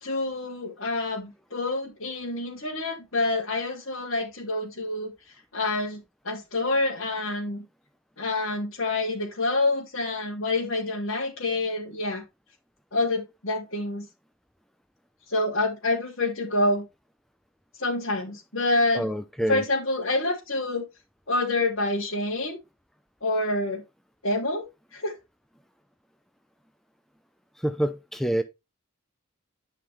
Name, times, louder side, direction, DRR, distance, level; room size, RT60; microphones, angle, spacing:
voice 1, 0.0-5.1 5.5-6.0 6.2-7.6 8.2-12.2 12.9-14.0 15.3-16.8 17.8-19.1 19.5-20.8 21.3-22.6 23.2-23.8 24.2-24.6 24.9-25.1, left 2 dB, 70° left, 3.1 m, -27 dB
voice 2, 18.9-19.6 27.6-28.4, equal, ahead, 0.6 m, -27 dB
11.5 x 5.7 x 3.5 m
head